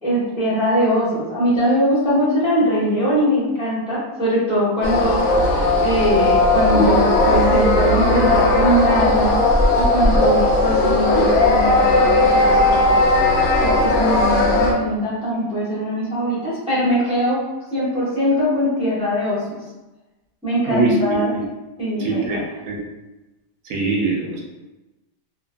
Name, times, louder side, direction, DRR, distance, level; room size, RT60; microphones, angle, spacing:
voice 1, 0.0-9.4 9.7-13.0 13.6-17.4 17.7-19.5 20.4-21.4 21.8-22.4, equal, 5° right, -10 dB, 0.6 m, -21 dB
sound 1, 4.8-14.7, left 2 dB, 70° left, 0.6 m, -16 dB
voice 2, 20.7-21.4 22.0-22.8 23.7-24.4, right 3 dB, 70° right, -2 dB, 0.9 m, -22 dB
2.8 x 2.4 x 2.2 m, 1.1 s
omnidirectional pair, 1.8 m